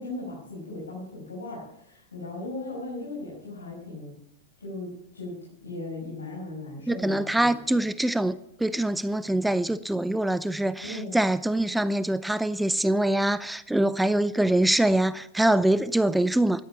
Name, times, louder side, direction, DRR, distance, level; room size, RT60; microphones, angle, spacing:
voice 1, 0.0-4.2 4.6-5.3 5.6-7.8 10.8-11.2, left 2 dB, 80° left, 5.9 m, -37 dB
voice 2, 6.9-16.6, right 1 dB, 5° right, 0.6 m, -24 dB
13.5 x 12.5 x 7.1 m
figure-of-eight pair, 100°, 0 cm